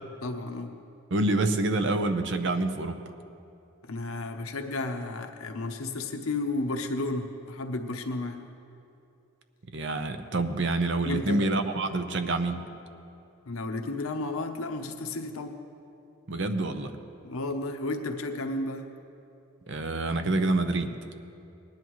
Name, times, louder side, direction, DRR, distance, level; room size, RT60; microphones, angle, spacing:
voice 1, 0.2-0.7 3.8-8.5 11.0-11.4 13.5-15.6 17.2-18.9, left 2 dB, 80° left, 5 dB, 0.8 m, -33 dB
voice 2, 1.1-3.0 9.7-12.6 16.3-16.9 19.7-21.0, right 2 dB, 55° right, 8 dB, 0.7 m, -27 dB
19.0 x 10.5 x 3.1 m, 2.7 s
head